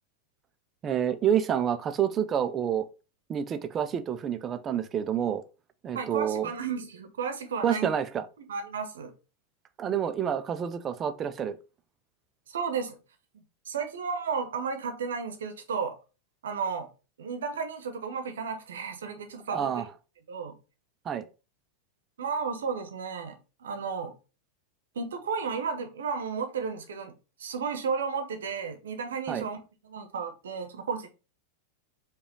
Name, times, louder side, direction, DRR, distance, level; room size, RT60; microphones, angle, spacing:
voice 1, 0.8-2.9 3.3-5.4 5.8-6.5 7.6-8.2 9.8-11.6 19.5-19.8 21.1-21.2 29.3-29.4, right 9 dB, 25° right, 0.4 m, -28 dB
voice 2, 5.9-7.9 8.5-9.1 12.5-13.0 13.7-16.0 16.4-16.9 17.2-19.8 20.3-20.5 22.2-24.1 24.9-27.1 27.4-31.1, right 5 dB, 65° right, 0.8 m, -33 dB
4.9 x 2.3 x 3.7 m
figure-of-eight pair, 90°, 0 cm